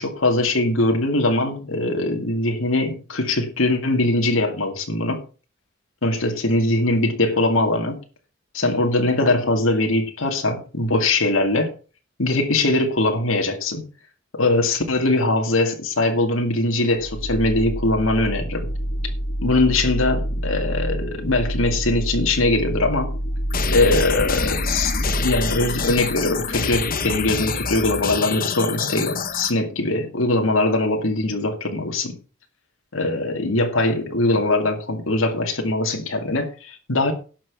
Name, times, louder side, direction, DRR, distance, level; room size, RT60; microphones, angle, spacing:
voice 1, 0.0-5.2 6.0-8.0 8.5-11.7 12.2-13.8 14.3-18.7 19.4-23.2 23.7-32.2 32.9-37.1, left 2 dB, 85° left, 2.3 m, -21 dB
sound 1, 16.9-26.6, equal, 70° left, 2.3 m, -27 dB
sound 2, 23.5-29.5, left 5 dB, 45° left, 1.1 m, -27 dB
11.5 x 6.2 x 7.0 m
head